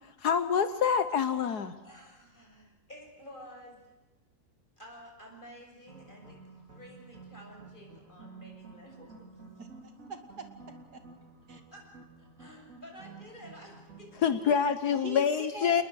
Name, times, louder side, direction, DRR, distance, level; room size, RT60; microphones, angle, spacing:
voice 1, 0.2-1.7 14.2-15.8, left 7 dB, 70° left, 11 dB, 1.6 m, -26 dB
voice 2, 1.8-3.8 4.8-9.3 11.7-14.4 15.3-15.8, equal, 30° left, 1 dB, 7.3 m, -51 dB
sound 1, 5.9-14.4, right 4 dB, 50° right, 3.5 m, -52 dB
voice 3, 9.6-11.0 11.5-11.6 14.9-15.8, right 5 dB, 75° right, 6 dB, 3.0 m, -43 dB
29.0 x 20.5 x 6.5 m, 1.1 s
omnidirectional pair, 1.8 m